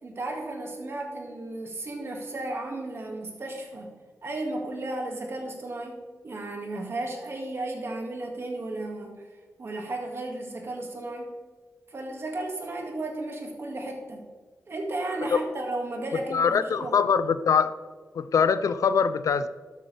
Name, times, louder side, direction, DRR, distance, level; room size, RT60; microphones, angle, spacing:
voice 1, 0.0-3.9 4.2-9.3 9.6-11.3 11.9-14.3 14.7-17.0, right 2 dB, 45° right, 1 dB, 2.0 m, -34 dB
voice 2, 16.3-17.7 18.2-19.5, left 6 dB, 70° left, 13 dB, 0.5 m, -23 dB
12.0 x 8.1 x 3.3 m, 1.4 s
wide cardioid pair, 135°, 6 cm